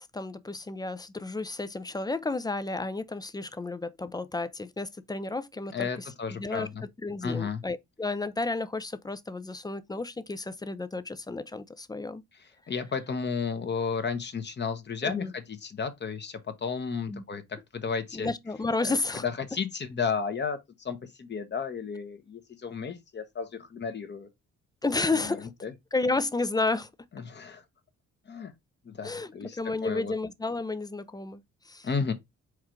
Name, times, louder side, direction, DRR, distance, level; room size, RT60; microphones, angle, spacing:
voice 1, 0.1-6.1 6.4-6.7 7.0-12.2 15.0-15.3 17.1-17.2 18.1-19.2 24.8-25.5 25.9-26.9 29.0-31.9, left 3 dB, 15° left, 0.4 m, -32 dB
voice 2, 5.7-6.8 7.2-7.6 12.7-18.3 18.8-19.0 19.2-24.3 25.1-25.7 27.1-27.6 28.3-28.5 28.8-30.1 31.8-32.1, left 5 dB, 35° left, 0.9 m, -33 dB
4.6 x 2.5 x 4.4 m
cardioid pair, 90°, 30 cm